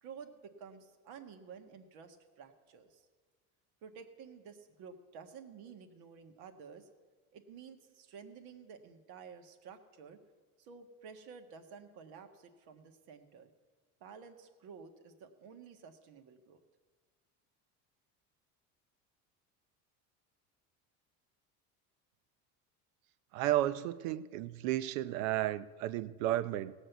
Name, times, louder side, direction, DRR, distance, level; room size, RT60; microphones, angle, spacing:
voice 1, 0.0-3.0 3.8-6.9 7.3-10.2 10.6-13.5 14.0-16.6, right 6 dB, 70° right, 7 dB, 1.6 m, -52 dB
voice 2, 23.3-26.7, right 14 dB, 90° right, 15 dB, 0.7 m, -33 dB
17.5 x 6.5 x 8.1 m, 1.4 s
supercardioid pair, 110°, 39 cm